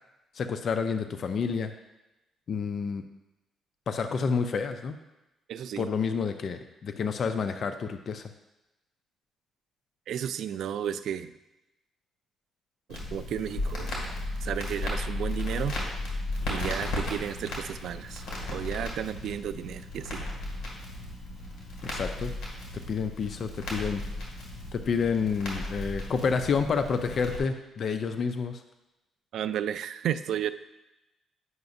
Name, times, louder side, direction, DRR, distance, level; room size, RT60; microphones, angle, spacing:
voice 1, 0.3-1.7 2.5-3.0 3.9-5.0 5.8-8.3 21.8-22.3 22.9-24.0 24.7-28.6, left 5 dB, 55° left, 8 dB, 0.4 m, -29 dB
voice 2, 5.5-6.0 10.1-11.3 12.9-14.0 14.4-15.8 16.5-18.2 18.5-20.3 29.3-30.5, right 9 dB, 75° right, 12 dB, 0.3 m, -33 dB
Crackle, 12.9-27.4, left 1 dB, 75° left, 2.2 m, -35 dB
9.4 x 5.7 x 2.6 m, 0.99 s
cardioid pair, 90°, 0 cm